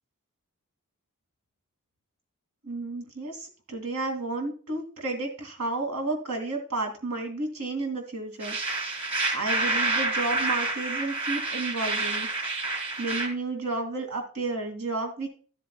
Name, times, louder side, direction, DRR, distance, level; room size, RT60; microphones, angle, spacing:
voice 1, 2.6-8.7 9.3-12.3 13.0-15.3, right 2 dB, 75° right, 3 dB, 2.5 m, -32 dB
sound 1, 8.4-13.3, right 2 dB, 25° right, 2.7 m, -28 dB
13.0 x 7.6 x 2.3 m, 0.40 s
head